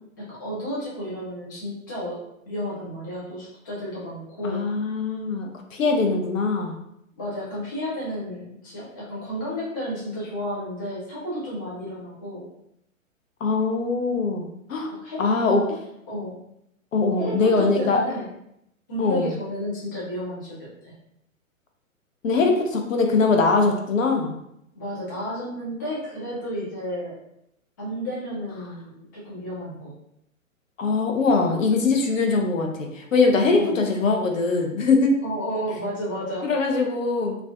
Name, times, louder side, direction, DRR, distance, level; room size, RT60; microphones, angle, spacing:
voice 1, 0.0-2.2 2.5-4.6 7.2-12.5 15.0-15.3 16.1-16.4 17.2-18.3 18.9-20.9 24.7-27.1 27.8-29.9 33.5-33.8 35.2-36.5, equal, 15° left, -7 dB, 0.3 m, -32 dB
voice 2, 4.4-6.7 13.4-14.9 15.2-15.6 16.9-18.0 19.0-19.3 22.2-24.4 30.8-35.1 36.4-37.4, left 4 dB, 70° left, 3 dB, 0.7 m, -22 dB
2.4 x 2.3 x 3.4 m, 0.78 s
figure-of-eight pair, 115°, 41 cm